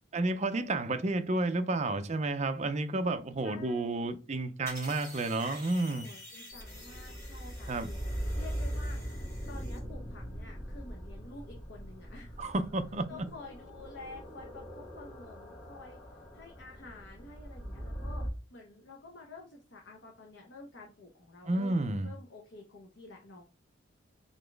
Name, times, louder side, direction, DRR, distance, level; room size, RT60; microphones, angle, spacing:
voice 1, 0.1-6.1 7.7-7.9 12.4-13.3 21.5-22.1, right 2 dB, 35° right, 0.5 m, -31 dB
voice 2, 3.4-4.2 5.9-8.0 8.3-9.0 9.5-12.4 13.1-16.0 16.3-18.3 18.5-23.4, left 3 dB, 60° left, 0.9 m, -50 dB
sound 1, 4.7-9.8, left 1 dB, 15° left, 2.5 m, -49 dB
sound 2, 6.5-18.3, equal, 40° left, 2.3 m, -40 dB
4.1 x 3.8 x 3.3 m
head